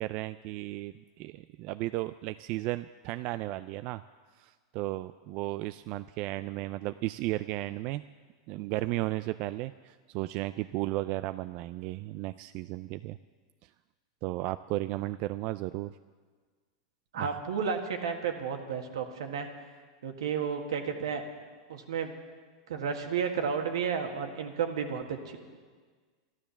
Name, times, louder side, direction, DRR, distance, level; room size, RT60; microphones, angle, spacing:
voice 1, 0.0-4.0 4.4-8.0 8.5-13.2 13.6-13.7 14.2-16.0 17.2-17.4, right 17 dB, 50° right, 12 dB, 0.3 m, -34 dB
voice 2, 17.1-19.5 20.0-21.2 21.7-22.1 22.7-25.4, right 6 dB, 80° right, 4 dB, 1.7 m, -32 dB
12.5 x 12.5 x 7.0 m, 1.5 s
hypercardioid pair, 120°, 3 cm